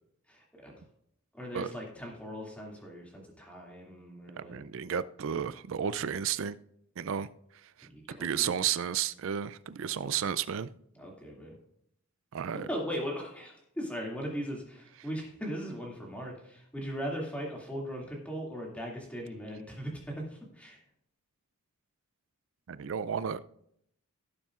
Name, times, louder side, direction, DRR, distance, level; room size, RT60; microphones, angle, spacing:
voice 1, 0.3-0.8 1.3-4.6 7.9-8.5 11.0-11.5 12.7-19.9 20.3-20.8, equal, 5° left, 2.4 m, -39 dB
voice 2, 4.5-6.6 7.0-7.3 7.8-10.7 12.3-12.7 22.7-23.5, right 8 dB, 60° right, 0.4 m, -32 dB
17.5 x 7.2 x 2.5 m
head